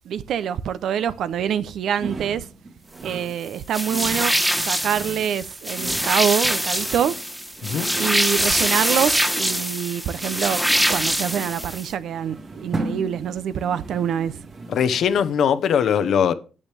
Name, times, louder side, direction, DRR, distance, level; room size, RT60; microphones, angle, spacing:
voice 1, 0.1-2.5 3.0-4.3 4.7-7.2 7.9-10.6 10.9-14.4, right 9 dB, 70° right, 0.6 m, -25 dB
sound 1, 2.0-15.4, right 3 dB, 40° right, 2.1 m, -37 dB
sound 2, 3.7-11.9, equal, 5° right, 1.0 m, -24 dB
voice 2, 14.7-16.3, left 8 dB, 65° left, 0.8 m, -20 dB
8.7 x 8.5 x 3.4 m
cardioid pair, 90°, 0 cm